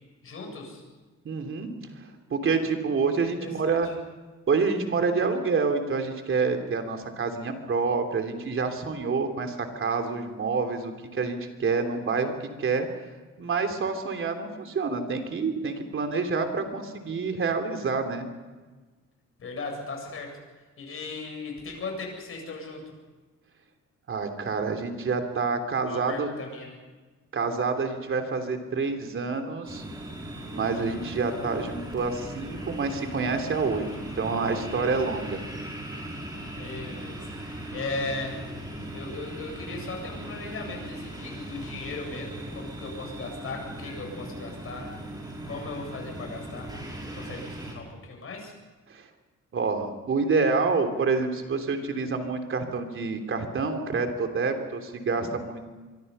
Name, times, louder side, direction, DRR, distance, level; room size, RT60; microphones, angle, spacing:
voice 1, 0.2-0.8 3.4-3.8 19.4-20.3 20.8-22.8 25.8-26.8 36.5-38.4 38.9-44.9 45.5-46.7 47.2-48.5, left 3 dB, 50° left, 2 dB, 7.8 m, -37 dB
voice 2, 1.2-1.7 1.9-3.9 4.5-12.9 13.4-18.3 24.1-26.3 27.3-29.8 30.5-35.4 48.9-49.1 49.5-55.7, right 4 dB, 45° right, 5 dB, 3.3 m, -27 dB
sound 1, 29.6-47.7, right 1 dB, 15° right, 6.0 m, -38 dB
25.5 x 24.0 x 5.6 m, 1.3 s
wide cardioid pair, 150°, 29 cm